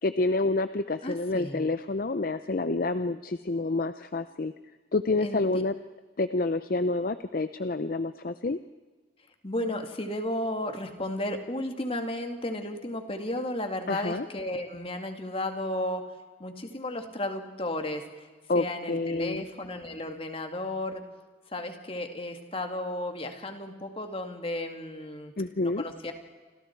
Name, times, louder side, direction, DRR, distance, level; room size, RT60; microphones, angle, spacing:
voice 1, 0.0-4.5 4.9-5.7 6.2-8.6 13.9-14.2 18.5-19.4 25.4-25.8, left 2 dB, 50° left, 12 dB, 0.6 m, -28 dB
voice 2, 1.0-1.6 5.2-5.6 9.4-16.1 16.4-18.1 18.5-21.1 21.5-25.3 25.6-26.1, left 1 dB, 30° left, 5 dB, 2.3 m, -33 dB
29.0 x 26.5 x 4.6 m, 1.3 s
head